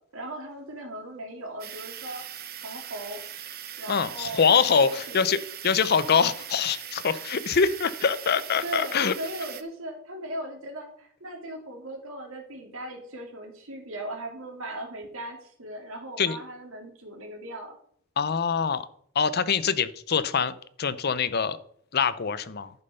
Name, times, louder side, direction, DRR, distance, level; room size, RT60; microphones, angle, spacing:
voice 1, 0.1-2.2 2.6-3.2 3.8-4.4 4.7-5.3 7.1-7.3 8.6-17.8, right 1 dB, 70° right, 2 dB, 2.3 m, -38 dB
sound 1, 1.6-9.6, right 10 dB, 45° right, 0.8 m, -40 dB
voice 2, 3.9-9.1 16.2-16.4 18.2-18.9 19.1-21.6 21.9-22.7, left 6 dB, 45° left, 14 dB, 0.6 m, -24 dB
10.5 x 5.4 x 5.5 m, 0.63 s
head